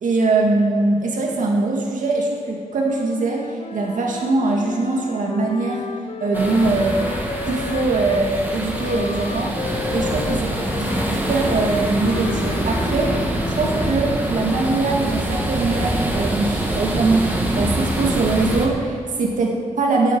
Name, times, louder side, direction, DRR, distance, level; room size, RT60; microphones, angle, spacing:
voice 1, 0.0-5.8 6.2-7.0 7.5-10.5 10.8-13.2 13.4-20.2, right 3 dB, 85° right, -1 dB, 2.1 m, -22 dB
Wind instrument woodwind instrument, 2.8-8.3 8.7-14.6, left 6 dB, 50° left, 0.7 m, -34 dB
sound 1, 6.3-18.7, right 1 dB, 15° right, 2.2 m, -24 dB
10.0 x 7.8 x 8.8 m, 2.2 s
cardioid pair, 75°, 13 cm